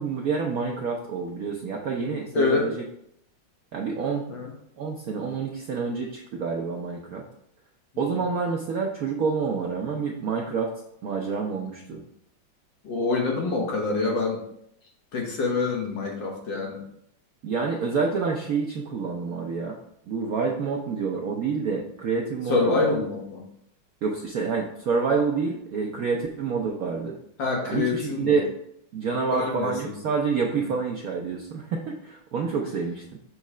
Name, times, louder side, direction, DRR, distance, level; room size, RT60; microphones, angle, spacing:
voice 1, 0.0-2.8 3.7-4.3 4.8-7.2 8.0-10.7 11.0-12.0 17.4-19.8 20.1-23.0 24.0-27.2 27.7-28.5 28.9-33.2, right 5 dB, 70° right, 0 dB, 0.8 m, -28 dB
voice 2, 2.3-2.7 4.3-4.5 12.8-14.4 15.1-16.8 22.5-23.4 27.4-28.4 29.3-29.9, left 3 dB, 65° left, -1 dB, 1.9 m, -26 dB
6.5 x 3.1 x 4.8 m, 0.74 s
omnidirectional pair, 2.2 m